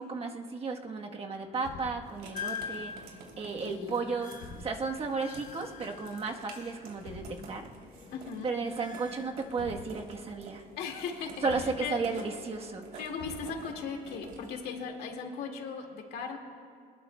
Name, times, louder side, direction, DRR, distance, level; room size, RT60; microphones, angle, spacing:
voice 1, 0.0-2.9 3.4-7.7 8.4-10.6 11.4-13.0, right 4 dB, 35° right, 2 dB, 1.3 m, -34 dB
Truck, 1.3-2.3 4.1-5.0 6.6-7.6 9.2-10.3 11.4-12.3 13.2-14.0, left 4 dB, 90° left, 3.0 m, -48 dB
Writing, 2.0-14.5, right 3 dB, 70° right, 3.1 m, -50 dB
sound 1, 2.3-7.1 7.4-9.3, left 7 dB, 50° left, 1.2 m, -44 dB
voice 2, 3.7-4.1 8.1-8.5 10.8-12.0 13.0-16.4, left 5 dB, 70° left, 2 dB, 2.1 m, -38 dB
22.0 x 20.5 x 2.3 m, 2.1 s
cardioid pair, 110°, 17 cm